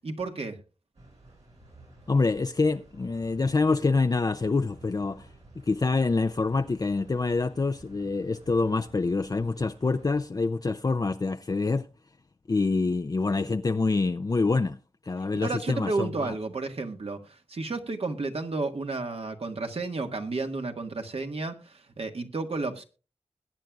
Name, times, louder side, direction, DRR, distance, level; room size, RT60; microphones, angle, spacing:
voice 1, 0.0-0.6 15.3-22.8, right 3 dB, 65° right, 1.6 m, -32 dB
sound 1, 0.9-10.2, right 2 dB, 90° right, 7.6 m, -53 dB
voice 2, 2.1-5.3 5.7-11.9 12.5-14.8 15.0-16.3, left 3 dB, 35° left, 0.5 m, -26 dB
21.0 x 9.1 x 2.4 m
cardioid pair, 50°, 11 cm